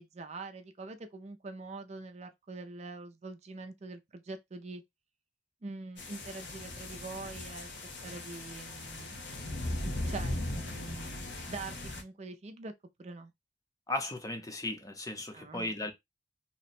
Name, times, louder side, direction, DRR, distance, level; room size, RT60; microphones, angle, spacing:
voice 1, 0.0-4.8 5.6-7.7 8.0-9.2 9.7-11.1 11.5-12.7 13.0-13.3 15.3-15.7, right 3 dB, 40° right, 0.5 m, -44 dB
sound 1, 6.0-12.0, left 1 dB, 85° left, 0.9 m, -38 dB
voice 2, 13.9-15.9, left 2 dB, 20° left, 0.7 m, -36 dB
2.9 x 2.1 x 4.1 m
head